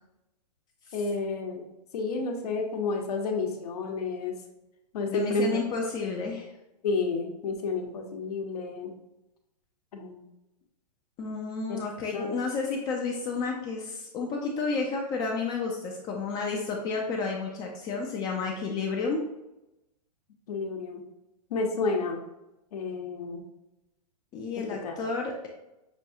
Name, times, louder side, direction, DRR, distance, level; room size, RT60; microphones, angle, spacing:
voice 1, 0.9-1.6 1.9-4.3 4.9-5.6 6.8-8.9 9.9-10.2 11.7-11.8 12.1-12.4 20.5-21.0 21.5-22.2 22.7-23.4 24.8-25.0, left 3 dB, 65° left, 2 dB, 1.0 m, -30 dB
voice 2, 5.1-6.5 11.2-19.2 24.3-25.5, left 4 dB, 20° left, 0 dB, 0.4 m, -31 dB
6.1 x 2.3 x 2.7 m, 0.92 s
hypercardioid pair, 145°, 21 cm